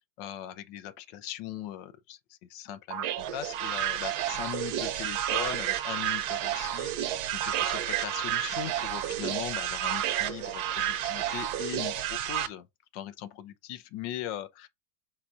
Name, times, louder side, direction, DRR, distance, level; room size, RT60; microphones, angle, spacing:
voice 1, 0.0-3.1 3.3-12.7 12.9-14.7, left 11 dB, 85° left, 1.3 m, -39 dB
sound 1, 2.9-12.5, right 12 dB, 70° right, 1.0 m, -31 dB
4.4 x 4.3 x 2.4 m
omnidirectional pair, 1.9 m